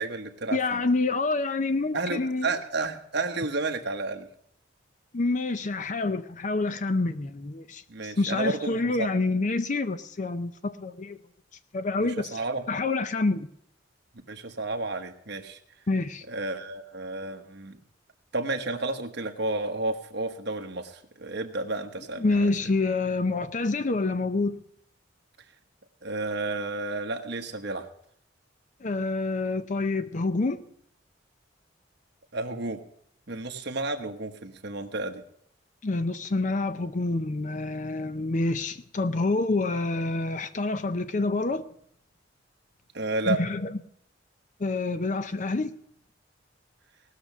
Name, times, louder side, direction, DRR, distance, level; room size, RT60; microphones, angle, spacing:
voice 1, 0.0-0.8 1.9-4.3 7.9-9.1 12.0-12.7 14.3-15.6 16.3-17.8 18.3-22.5 26.0-27.9 32.3-32.8 33.3-35.2 42.9-43.4, right 2 dB, 60° right, 1.2 m, -31 dB
voice 2, 0.5-2.5 5.1-11.2 11.7-12.4 12.7-13.5 15.9-16.2 22.2-24.6 28.8-30.6 35.8-41.6 43.3-43.7 44.6-45.7, left 3 dB, 40° left, 0.5 m, -27 dB
18.5 x 6.7 x 6.0 m
head